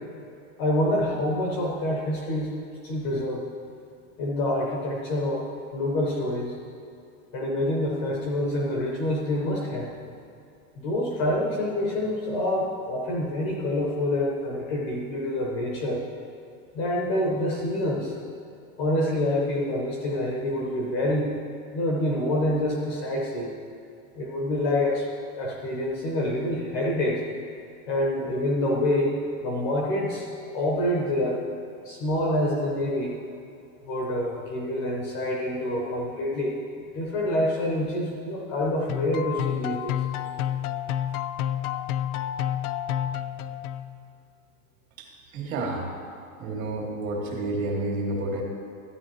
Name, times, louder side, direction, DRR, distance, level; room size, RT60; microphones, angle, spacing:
voice 1, 0.6-2.5 2.8-3.4 4.2-6.6 7.3-10.0 10.8-16.1 16.7-18.1 18.8-21.4 21.7-23.5 24.1-25.1 25.3-27.2 27.9-29.1 29.4-31.4 31.8-33.2 33.8-36.6 36.9-40.0, left 1 dB, 20° left, -2 dB, 0.5 m, -27 dB
sound 1, 38.9-44.1, left 11 dB, 80° left, 0.6 m, -29 dB
voice 2, 45.0-45.9 46.4-48.4, right 2 dB, 65° right, 0 dB, 2.1 m, -30 dB
13.0 x 9.4 x 3.0 m, 2.6 s
supercardioid pair, 175°, 44 cm